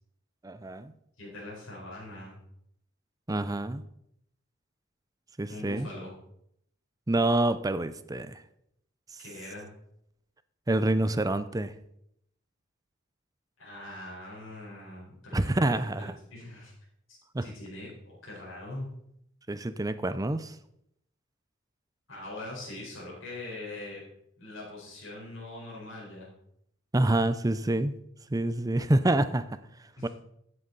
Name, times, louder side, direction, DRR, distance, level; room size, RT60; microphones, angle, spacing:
voice 1, 0.4-0.9 3.3-3.8 5.4-5.9 7.1-8.4 10.7-11.7 15.3-16.1 17.3-17.4 19.5-20.5 26.9-27.9 28.3-29.6 30.0-30.1, right 1 dB, 20° right, 13 dB, 0.5 m, -27 dB
voice 2, 1.2-2.4 5.5-6.1 9.2-9.7 13.6-16.7 17.4-17.9 18.2-18.9 22.1-24.0 24.4-26.3 30.0-30.1, left 2 dB, 70° left, -5 dB, 4.6 m, -42 dB
15.5 x 7.9 x 4.0 m, 0.75 s
head